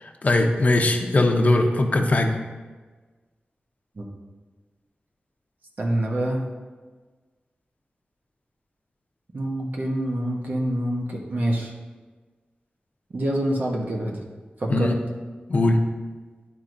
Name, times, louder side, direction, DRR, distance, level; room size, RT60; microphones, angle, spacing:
voice 1, 0.2-2.4 14.7-15.0 15.5-15.8, left 2 dB, 45° left, 3 dB, 0.8 m, -20 dB
voice 2, 5.8-6.4 9.3-11.7 13.1-14.2 14.6-14.9, right 1 dB, 55° right, -1 dB, 1.1 m, -26 dB
11.5 x 4.6 x 2.6 m, 1.4 s
wide cardioid pair, 105°, 3 cm